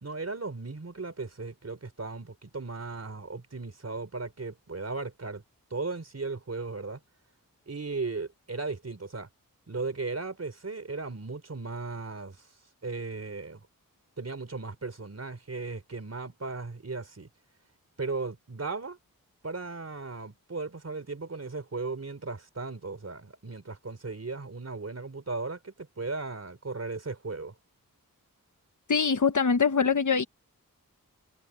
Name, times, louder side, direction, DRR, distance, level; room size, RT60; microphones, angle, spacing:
voice 1, 0.0-5.4 5.7-7.0 7.7-9.3 9.7-12.5 12.8-13.6 14.2-17.3 18.0-19.0 19.4-27.5, right 3 dB, 50° right, 4.0 m, -36 dB
voice 2, 28.9-30.2, left 5 dB, 60° left, 1.3 m, -23 dB
wide cardioid pair, 65°, 34 cm